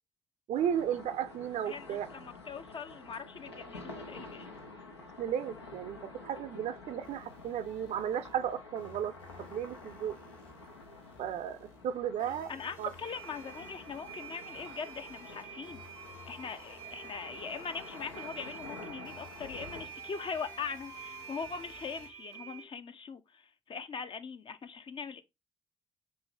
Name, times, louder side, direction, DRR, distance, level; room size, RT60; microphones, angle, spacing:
sound 1, 0.5-19.9, left 3 dB, 90° left, 0.6 m, -49 dB
voice 1, 0.5-2.1 5.2-10.2 11.2-11.6 11.8-12.5 12.8-12.9, right 9 dB, 55° right, 0.5 m, -34 dB
voice 2, 1.7-4.5 12.5-15.8 16.3-25.2, left 6 dB, 40° left, 0.5 m, -41 dB
sound 2, 7.0-22.1, left 4 dB, 65° left, 1.4 m, -55 dB
sound 3, 13.0-22.6, right 10 dB, 80° right, 0.8 m, -48 dB
5.3 x 2.7 x 3.3 m
figure-of-eight pair, 40°, 14 cm